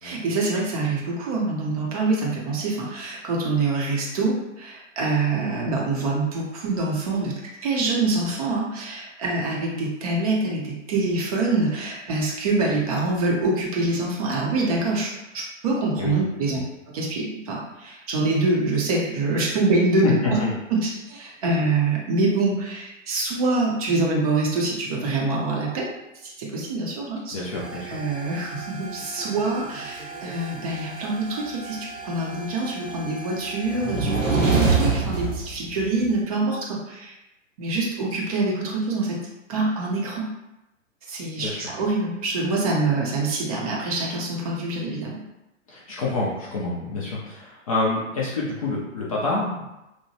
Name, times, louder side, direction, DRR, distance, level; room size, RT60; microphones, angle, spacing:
voice 1, 0.0-7.3 7.6-16.6 16.9-20.4 20.7-25.9 26.2-27.4 27.7-37.1 37.6-39.2 39.5-40.3 41.1-45.2, right 3 dB, 30° right, -3 dB, 0.5 m, -25 dB
voice 2, 27.3-28.0 41.4-41.7 45.7-49.7, left 3 dB, 30° left, -5 dB, 0.4 m, -27 dB
sound 1, 27.5-36.2, right 4 dB, 90° right, 0.7 m, -28 dB
2.8 x 2.1 x 2.6 m, 0.94 s
figure-of-eight pair, 120°, 38 cm